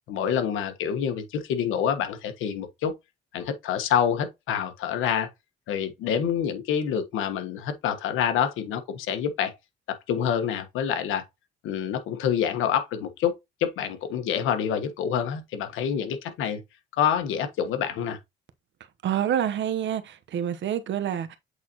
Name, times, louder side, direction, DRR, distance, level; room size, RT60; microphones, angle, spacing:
voice 1, 0.1-2.9 3.3-5.3 5.7-9.5 10.1-11.2 11.6-13.3 13.6-16.6 17.0-18.2, left 8 dB, 90° left, 1.3 m, -27 dB
voice 2, 19.0-21.4, right 10 dB, 70° right, 1.0 m, -27 dB
8.1 x 4.2 x 2.9 m
cardioid pair, 90°, 20 cm